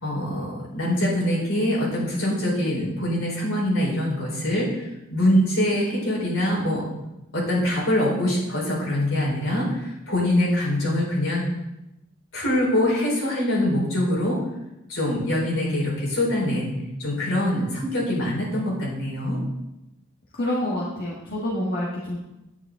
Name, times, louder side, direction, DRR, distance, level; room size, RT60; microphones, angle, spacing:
voice 1, 0.0-6.8 7.3-11.4 12.3-14.4 14.9-16.7 17.0-19.4, left 1 dB, 65° left, -5 dB, 4.5 m, -24 dB
voice 2, 20.3-22.2, left 1 dB, 45° left, -5 dB, 1.6 m, -27 dB
9.8 x 9.8 x 3.8 m, 0.92 s
head